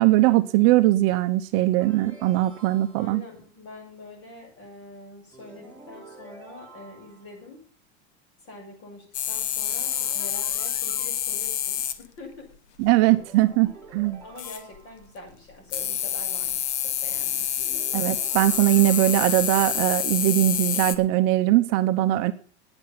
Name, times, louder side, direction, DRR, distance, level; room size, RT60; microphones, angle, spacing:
voice 1, 0.0-3.2 12.8-14.2 17.9-22.3, right 16 dB, 45° right, 10 dB, 0.8 m, -21 dB
sound 1, 1.8-3.3 5.3-7.4 9.6-11.1 13.1-15.2 17.6-19.7, right 3 dB, 5° left, 3.2 m, -48 dB
voice 2, 3.0-7.6 8.4-12.5 12.9-13.1 14.2-17.5, left 2 dB, 40° left, 1 dB, 7.1 m, -45 dB
sound 2, 9.1-12.0 14.4-14.8 15.7-21.0, left 10 dB, 75° left, 1.2 m, -27 dB
9.9 x 7.5 x 8.9 m, 0.42 s
supercardioid pair, 155°, 33 cm